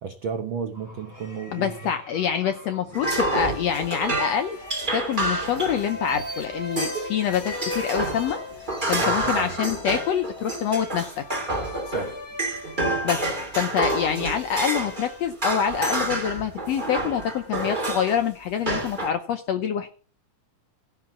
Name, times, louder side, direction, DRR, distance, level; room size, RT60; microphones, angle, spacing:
voice 1, 0.0-1.9 9.0-9.6 11.8-12.1, right 6 dB, 75° right, 6 dB, 1.1 m, -33 dB
sound 1, 0.7-3.8 4.3-8.3 8.6-9.5, right 1 dB, 20° left, 0.5 m, -42 dB
voice 2, 1.5-4.6 4.9-8.4 8.9-11.2 13.0-13.3 13.5-19.9, left 8 dB, 75° left, 8 dB, 1.6 m, -26 dB
sound 2, 2.9-6.2 6.8-7.1 7.3-15.1 15.4-18.2 18.7-19.1, right 2 dB, 15° right, 2.3 m, -28 dB
sound 3, 3.2-15.3, left 3 dB, 35° left, 1.7 m, -41 dB
16.5 x 5.9 x 7.2 m, 0.39 s
omnidirectional pair, 3.9 m